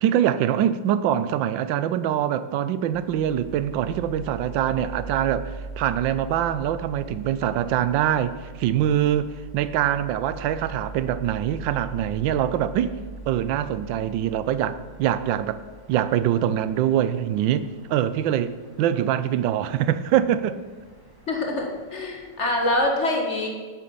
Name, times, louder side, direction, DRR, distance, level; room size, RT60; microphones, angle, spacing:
voice 1, 0.0-13.0 13.3-15.6 15.9-20.6, right 10 dB, 85° right, 1.3 m, -24 dB
sound 1, 2.9-22.8, right 3 dB, 10° right, 1.7 m, -42 dB
voice 2, 21.3-23.5, left 1 dB, 40° left, 1.6 m, -25 dB
9.0 x 8.3 x 5.4 m
omnidirectional pair, 2.0 m